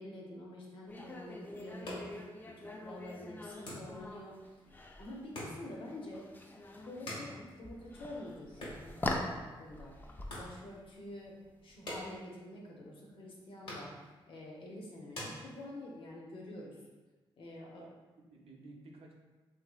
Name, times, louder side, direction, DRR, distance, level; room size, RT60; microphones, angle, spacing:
voice 1, 0.0-4.4 5.0-6.3 6.9-9.9 10.3-11.3 11.6-16.8 17.4-17.9, left 1 dB, 65° left, -2 dB, 0.7 m, -47 dB
sound 1, 0.9-12.2, left 2 dB, 20° left, 0.3 m, -44 dB
sound 2, 1.6-16.1, left 1 dB, 80° left, 1.1 m, -50 dB
voice 2, 17.6-19.1, right 2 dB, 80° right, -1 dB, 0.5 m, -54 dB
2.9 x 2.6 x 2.3 m, 1.2 s
cardioid pair, 75°, 10 cm